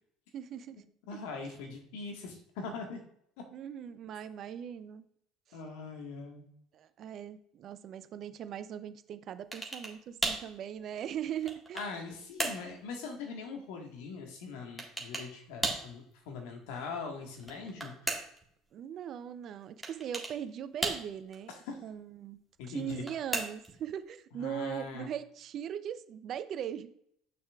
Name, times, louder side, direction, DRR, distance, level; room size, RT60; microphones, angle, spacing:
voice 1, 0.3-0.8 1.1-1.5 3.5-5.0 6.7-11.8 18.7-21.5 21.8-22.4 22.7-26.9, right 9 dB, 50° right, 13 dB, 0.5 m, -40 dB
voice 2, 1.1-3.0 5.5-6.4 11.7-18.1 21.5-21.8 22.6-23.0 24.3-25.1, left 4 dB, 70° left, 2 dB, 1.5 m, -42 dB
sound 1, 9.5-10.0 10.2-10.5 11.1-12.0 12.4-12.7 14.8-15.3 15.6-15.9 17.3-18.4 19.8-20.4 20.8-21.4 22.8-23.8, right 2 dB, 10° right, 1.7 m, -35 dB
7.6 x 6.2 x 2.4 m, 0.68 s
hypercardioid pair, 70°, 0 cm